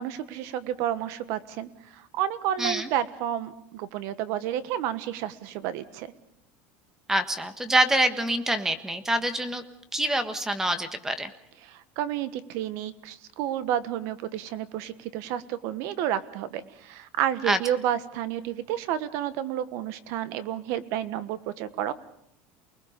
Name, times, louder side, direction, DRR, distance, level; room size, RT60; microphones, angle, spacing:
voice 1, 0.0-6.1 11.6-21.9, right 11 dB, 60° right, 14 dB, 1.4 m, -31 dB
voice 2, 2.6-2.9 7.1-9.6 9.9-11.3 17.4-17.6, right 1 dB, 10° right, 10 dB, 1.4 m, -25 dB
29.0 x 20.0 x 5.2 m, 0.72 s
cardioid pair, 155°, 5 cm